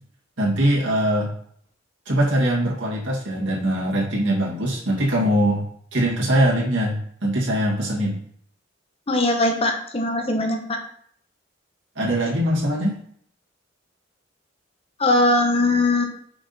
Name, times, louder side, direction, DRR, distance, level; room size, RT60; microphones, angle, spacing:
voice 1, 0.4-1.3 2.1-5.6 5.9-8.2 12.0-13.0, right 1 dB, 65° right, -5 dB, 2.2 m, -22 dB
voice 2, 9.1-10.8 15.0-16.0, left 2 dB, 30° left, 4 dB, 1.0 m, -20 dB
6.0 x 5.0 x 4.1 m, 0.63 s
head